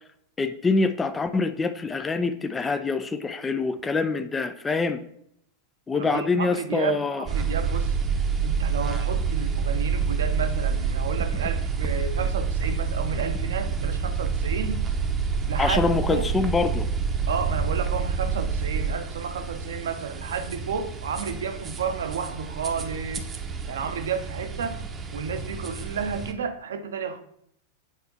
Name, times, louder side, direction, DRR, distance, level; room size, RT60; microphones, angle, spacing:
voice 1, 0.4-5.0 5.9-7.3 15.6-16.9, left 4 dB, 15° left, 0.5 m, -25 dB
voice 2, 5.9-8.0 8.4-14.8 15.5-15.8 16.1-16.3 17.3-23.3 23.7-24.8 25.1-27.2, right 6 dB, 65° right, 0.9 m, -31 dB
sound 1, 7.3-26.3, right 5 dB, 20° right, 0.9 m, -28 dB
8.3 x 4.4 x 5.4 m
figure-of-eight pair, 90°, 0 cm